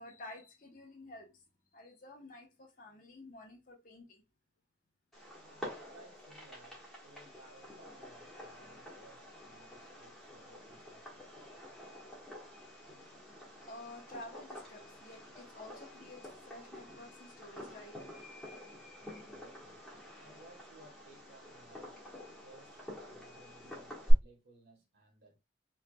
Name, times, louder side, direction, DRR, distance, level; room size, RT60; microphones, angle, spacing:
voice 1, 0.0-1.4 1.7-4.2 13.6-18.0 20.2-20.3, left 2 dB, 45° left, 0.9 m, -51 dB
Fireworks, 5.1-24.1, equal, ahead, 1.2 m, -44 dB
voice 2, 5.4-11.3 19.0-22.0 22.4-22.8 23.1-25.4, right 2 dB, 60° right, 1.3 m, -61 dB
3.3 x 3.2 x 2.2 m
head